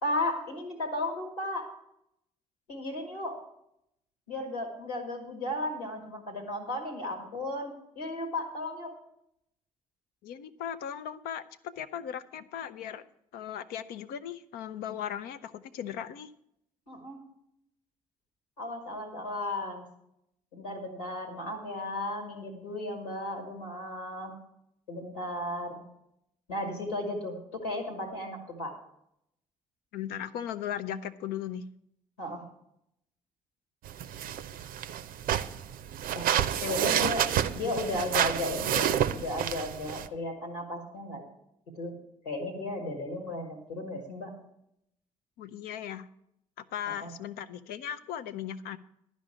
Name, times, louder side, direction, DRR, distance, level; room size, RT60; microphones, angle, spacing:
voice 1, 0.0-1.7 2.7-3.4 4.3-8.9 16.9-17.2 18.6-19.8 20.5-24.4 24.9-25.8 26.5-28.8 32.2-32.5 36.1-36.3 36.7-41.2 41.7-42.0 42.2-44.3 46.9-47.1, left 1 dB, 85° left, 2 dB, 1.7 m, -35 dB
voice 2, 10.2-13.0 13.3-16.3 29.9-31.7 36.5-36.7 45.4-46.1 46.6-48.8, left 9 dB, 60° left, 12 dB, 0.6 m, -37 dB
sound 1, 33.9-40.1, right 10 dB, 55° right, 0.5 m, -29 dB
11.5 x 5.2 x 8.5 m, 0.76 s
figure-of-eight pair, 40°, 18 cm